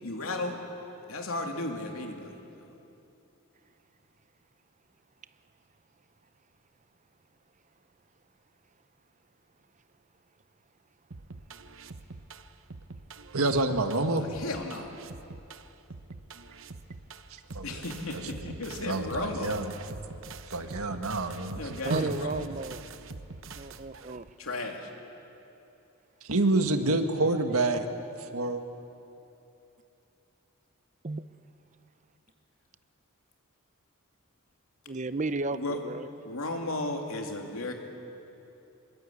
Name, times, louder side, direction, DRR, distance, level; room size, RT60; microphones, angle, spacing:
voice 1, 0.0-0.6 1.1-2.7 14.2-14.9 17.6-19.6 21.3-22.5 24.4-24.9 35.5-35.8 36.2-37.7, left 2 dB, 75° left, 2 dB, 2.7 m, -35 dB
sound 1, 11.1-24.3, right 3 dB, 65° right, 0.9 m, -45 dB
voice 2, 13.3-14.2 17.3-17.7 18.4-18.6 18.9-19.7 20.5-21.6 21.9-22.1 26.2-27.9 28.2-28.6, right 2 dB, 85° right, 7 dB, 1.7 m, -27 dB
voice 3, 21.8-22.8 23.5-24.3 31.0-31.2 34.9-36.1, right 3 dB, 35° right, 13 dB, 0.6 m, -33 dB
24.0 x 21.5 x 8.6 m, 2.9 s
head